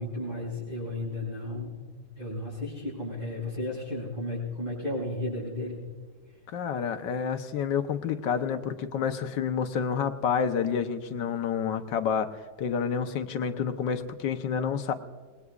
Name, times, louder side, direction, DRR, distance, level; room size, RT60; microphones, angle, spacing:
voice 1, 0.0-1.8 2.1-5.8, left 1 dB, 25° right, -8 dB, 5.8 m, -33 dB
voice 2, 6.5-12.3 12.6-14.9, left 7 dB, 80° left, 8 dB, 1.6 m, -29 dB
28.0 x 20.0 x 2.4 m, 1.5 s
omnidirectional pair, 1.9 m